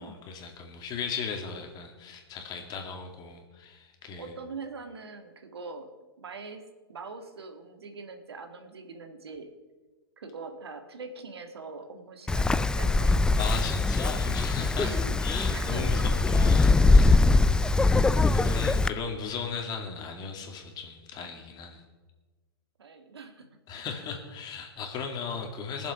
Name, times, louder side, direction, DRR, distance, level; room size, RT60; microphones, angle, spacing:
voice 1, 0.0-4.3 13.4-14.9 15.2-17.2 17.7-21.8 23.7-25.9, left 5 dB, 30° left, 3 dB, 2.4 m, -37 dB
voice 2, 4.2-5.9 6.2-9.5 10.2-13.2 14.7-15.2 15.5-16.2 22.8-23.6, right 4 dB, 85° right, 6 dB, 1.8 m, -42 dB
Wind, 12.3-18.9, left 3 dB, 5° left, 0.3 m, -22 dB
20.0 x 7.4 x 5.9 m, 1.3 s
hypercardioid pair, 120°, 13 cm